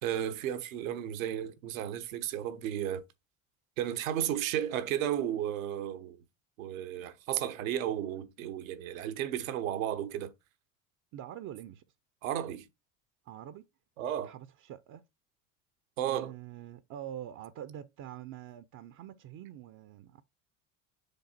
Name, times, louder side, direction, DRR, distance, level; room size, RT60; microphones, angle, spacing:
voice 1, 0.0-3.0 3.8-6.2 6.6-10.3 12.2-12.7 14.0-14.3 16.0-16.3, right 11 dB, 80° right, 1.0 m, -33 dB
voice 2, 11.1-11.8 13.2-13.7 14.2-15.0 16.0-20.2, right 11 dB, 50° right, 0.7 m, -45 dB
6.9 x 3.8 x 4.3 m
hypercardioid pair, 75°, 40 cm